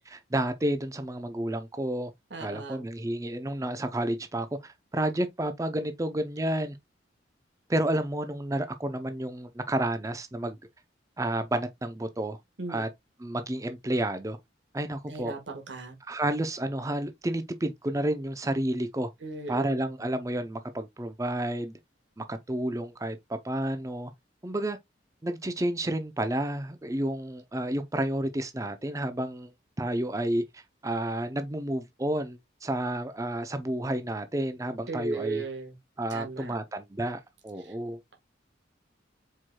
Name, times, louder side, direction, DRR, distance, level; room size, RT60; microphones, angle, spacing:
voice 1, 0.0-2.1 2.4-6.8 7.7-10.6 11.2-12.4 12.7-12.9 13.2-14.4 14.7-15.3 16.1-19.1 19.5-21.7 22.2-24.1 24.4-24.8 25.2-29.5 29.8-35.4 36.0-38.0, right 1 dB, 15° right, 0.5 m, -30 dB
voice 2, 2.3-2.8 12.6-12.8 15.1-16.0 19.2-19.9 34.9-35.8 36.1-36.5 37.6-37.7, right 3 dB, 75° right, 1.4 m, -36 dB
4.6 x 4.5 x 2.2 m
head